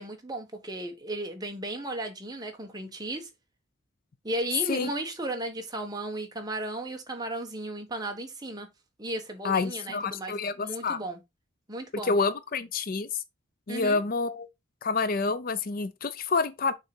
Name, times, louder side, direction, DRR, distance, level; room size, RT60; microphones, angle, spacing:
voice 1, 0.0-3.3 4.2-8.7 9.0-11.2 11.7-12.2 13.7-14.0, right 1 dB, 20° right, 1.3 m, -35 dB
voice 2, 9.4-11.0 12.0-13.2 13.7-14.5 14.8-16.7, left 4 dB, 45° left, 0.5 m, -28 dB
6.4 x 3.8 x 4.5 m
head